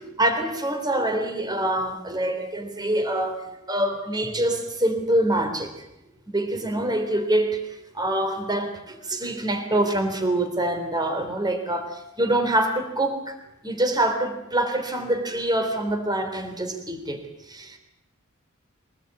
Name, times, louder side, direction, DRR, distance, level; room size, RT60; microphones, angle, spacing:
voice 1, 0.0-5.8 6.3-13.3 13.6-17.2 17.5-17.8, right 1 dB, 20° right, 7 dB, 3.3 m, -25 dB
24.0 x 20.0 x 8.3 m, 0.87 s
head